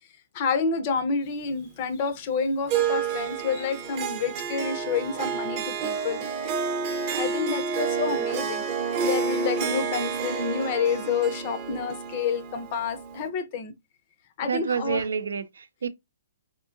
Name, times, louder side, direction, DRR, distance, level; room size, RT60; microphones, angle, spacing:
voice 1, 0.3-6.3 7.1-13.7 14.4-15.1, left 5 dB, 30° left, 0.5 m, -29 dB
Harp, 2.7-13.3, right 6 dB, 25° right, 0.6 m, -29 dB
voice 2, 14.4-15.9, right 6 dB, 85° right, 0.5 m, -28 dB
3.7 x 2.7 x 2.4 m
hypercardioid pair, 165°, 0 cm